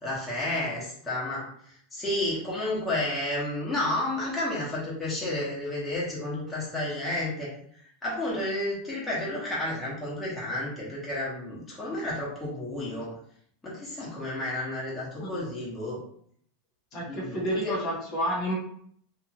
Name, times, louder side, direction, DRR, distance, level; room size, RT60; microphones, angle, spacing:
voice 1, 0.0-1.4 1.9-7.5 8.0-13.1 13.6-16.0 17.1-17.7, left 1 dB, 10° left, -7 dB, 0.9 m, -31 dB
voice 2, 16.9-18.5, equal, 40° left, -4 dB, 0.9 m, -30 dB
2.8 x 2.3 x 2.6 m, 0.63 s
supercardioid pair, 145°, 0 cm